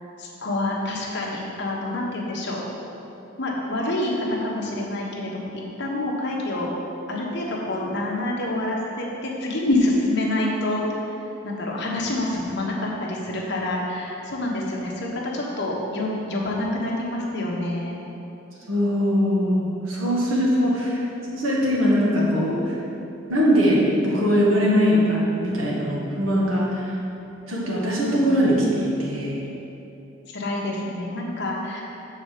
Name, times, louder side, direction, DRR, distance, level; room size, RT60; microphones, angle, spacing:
voice 1, 0.2-2.6 3.4-6.7 7.1-10.8 11.4-18.0 30.3-31.8, left 1 dB, 60° left, -3 dB, 1.2 m, -27 dB
voice 2, 18.7-21.0 21.3-22.7 23.3-26.9 27.5-29.4, equal, 85° right, -4 dB, 1.7 m, -21 dB
7.1 x 4.2 x 6.7 m, 2.9 s
head